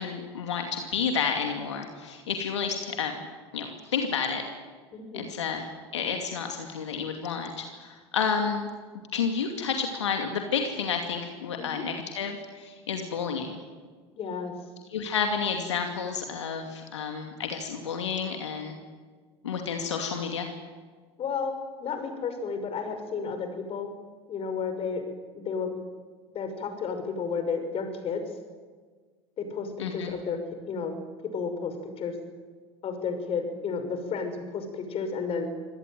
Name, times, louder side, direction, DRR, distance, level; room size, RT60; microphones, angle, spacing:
voice 1, 0.0-3.3 3.5-4.4 5.1-5.7 5.9-8.7 9.1-13.5 14.9-18.8 19.4-20.5 29.8-30.1, left 6 dB, 85° left, 4 dB, 2.5 m, -30 dB
voice 2, 4.9-5.3 11.6-11.8 14.2-14.5 21.2-23.9 24.3-25.0 25.3-25.7 26.3-28.2 29.4-30.4 30.7-30.9 31.3-32.1 32.8-35.6, left 5 dB, 40° left, 7 dB, 5.9 m, -32 dB
26.5 x 17.5 x 9.4 m, 1.5 s
hypercardioid pair, 80°, 15 cm